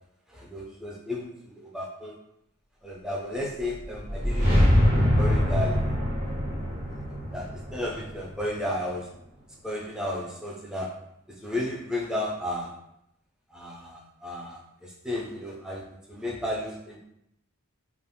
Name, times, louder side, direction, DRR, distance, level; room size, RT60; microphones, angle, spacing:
voice 1, 0.3-2.2 2.8-4.5 5.2-5.9 7.3-9.1 9.6-11.0 11.4-12.7 13.5-17.0, left 1 dB, 5° right, -2 dB, 0.4 m, -33 dB
sound 1, 3.7-8.8, equal, 50° right, 0.9 m, -24 dB
2.3 x 2.0 x 3.4 m, 0.78 s
head